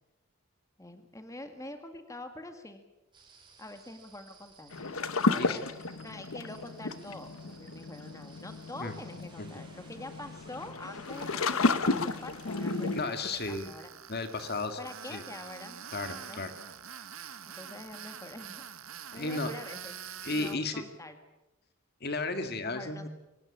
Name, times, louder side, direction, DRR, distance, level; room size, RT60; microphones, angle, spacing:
voice 1, 0.8-2.8 3.6-4.8 5.3-5.6 6.0-13.2 13.5-13.9 14.8-15.8 16.1-16.4 17.5-18.6 19.1-20.0 20.3-21.2 22.6-23.1, left 2 dB, 15° left, 7 dB, 1.9 m, -45 dB
sound 1, 3.1-13.0, right 4 dB, 20° right, 6.7 m, -58 dB
sound 2, 4.7-13.1, left 3 dB, 75° left, 1.2 m, -32 dB
Tools, 11.1-20.6, right 8 dB, 70° right, 1.4 m, -46 dB
voice 2, 12.9-13.7 14.1-14.8 15.1-15.2 15.9-16.5 19.1-19.5 20.2-20.8 22.0-23.1, left 3 dB, 45° left, 8 dB, 2.0 m, -34 dB
23.5 x 19.0 x 8.9 m, 0.97 s
head